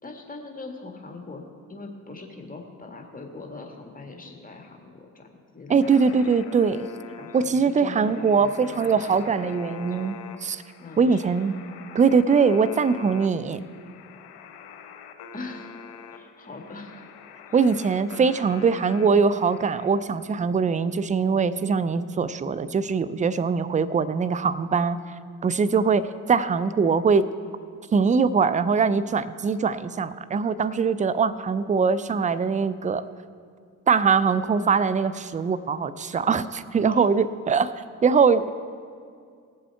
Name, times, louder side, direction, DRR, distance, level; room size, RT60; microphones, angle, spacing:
voice 1, 0.0-1.4 1.7-5.3 5.5-6.3 7.1-10.1 10.8-11.4 15.3-17.1 17.5-17.6 36.9-37.1, left 3 dB, 20° left, 2 dB, 1.9 m, -41 dB
voice 2, 5.7-6.9 7.3-10.1 10.4-10.6 11.0-11.5 11.9-13.6 17.5-25.0 25.4-26.0 26.3-27.2 27.9-33.0 33.9-37.7 38.0-38.5, right 5 dB, 15° right, 14 dB, 0.4 m, -22 dB
sound 1, 5.8-19.9, left 6 dB, 60° left, 1.0 m, -44 dB
18.5 x 7.5 x 4.6 m, 2.2 s
figure-of-eight pair, 50°, 45 cm